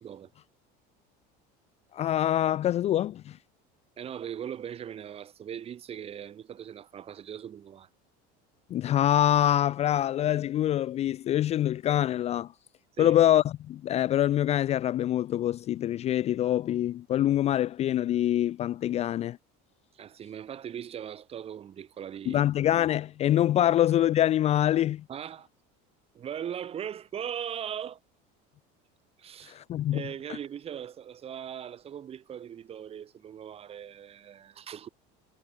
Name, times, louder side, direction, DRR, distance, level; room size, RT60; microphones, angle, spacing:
voice 1, 1.9-3.4 8.7-12.5 13.0-19.4 22.3-25.0 29.5-30.0, left 12 dB, 30° left, 0.5 m, -25 dB
voice 2, 4.0-7.9 13.0-13.2 19.9-22.4 25.1-25.5 26.1-28.0 29.2-29.6 29.9-34.9, right 9 dB, 30° right, 2.2 m, -39 dB
cardioid pair, 165°, 21 cm